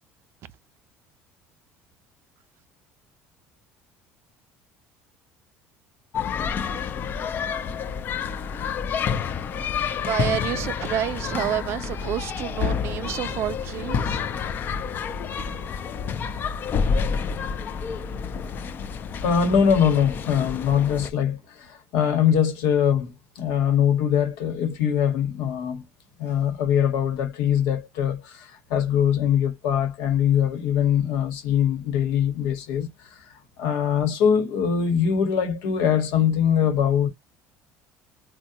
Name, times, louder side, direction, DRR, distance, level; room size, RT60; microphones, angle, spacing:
sound 1, 6.1-21.1, left 6 dB, 40° left, 0.4 m, -29 dB
voice 1, 10.0-14.2, right 12 dB, 55° right, 0.4 m, -29 dB
voice 2, 19.2-25.8 26.2-37.1, left 8 dB, 85° left, 1.0 m, -22 dB
3.5 x 2.1 x 2.8 m
cardioid pair, 125°, 5 cm